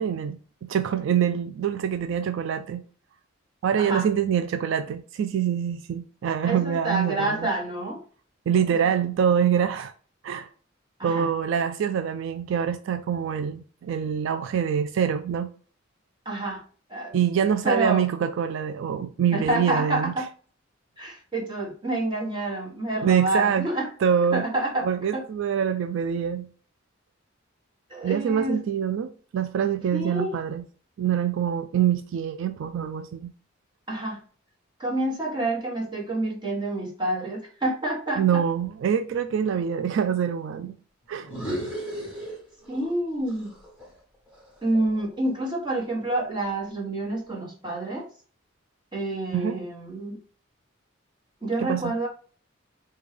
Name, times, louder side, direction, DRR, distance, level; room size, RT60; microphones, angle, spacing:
voice 1, 0.0-2.8 3.6-7.4 8.5-9.9 10.2-10.5 11.0-15.5 17.1-20.1 23.0-23.7 24.0-24.4 24.8-26.5 28.0-30.6 31.0-33.3 38.2-40.7 41.1-41.7 49.3-49.6 51.6-51.9, right 8 dB, 60° right, 0.3 m, -25 dB
voice 2, 6.4-8.0 11.0-11.3 16.2-16.6 16.9-17.1 17.6-18.0 19.3-20.3 21.0-23.9 24.3-25.2 27.9-28.6 29.9-30.3 33.9-34.2 34.8-38.4 42.7-43.6 44.6-48.1 48.9-50.2 51.4-52.1, right 2 dB, 20° right, 1.2 m, -28 dB
sound 1, 41.2-43.0 43.3-45.5, equal, 5° right, 1.4 m, -36 dB
5.0 x 2.3 x 3.2 m
head